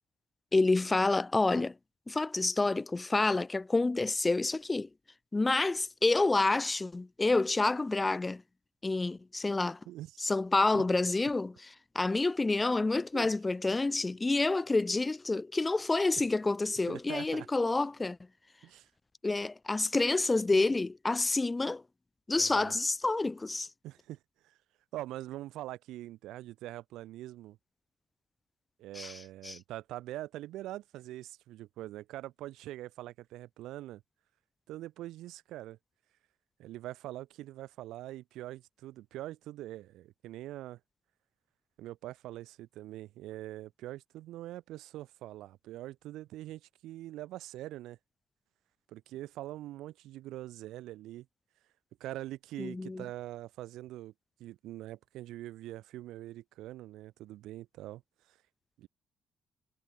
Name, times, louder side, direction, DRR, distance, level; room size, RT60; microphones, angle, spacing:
voice 1, 0.5-1.7 2.1-4.9 5.3-8.4 8.8-9.8 10.2-11.5 11.9-18.2 19.2-21.8 22.3-23.7 29.0-29.6 52.6-53.0, left 3 dB, 20° left, 0.4 m, -28 dB
voice 2, 9.9-10.2 10.7-10.8 13.1-13.3 16.9-17.5 18.6-18.9 22.4-22.7 23.8-24.6 24.9-27.6 28.8-34.0 34.7-35.8 36.6-40.8 41.8-48.0 48.9-51.3 52.0-54.1 54.4-58.0 58.3-58.4 58.8-58.9, right 15 dB, 90° right, 0.9 m, -43 dB
cardioid pair, 90°, 0 cm